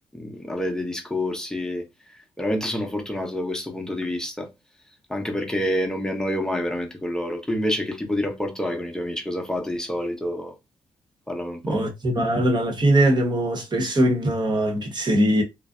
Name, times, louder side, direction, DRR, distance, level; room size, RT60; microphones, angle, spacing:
voice 1, 0.1-1.8 2.4-4.5 5.1-10.5 11.3-11.8, left 1 dB, 5° left, 0.8 m, -28 dB
voice 2, 11.6-15.4, right 1 dB, 35° right, 1.0 m, -21 dB
2.5 x 2.1 x 2.4 m
supercardioid pair, 55°, 12 cm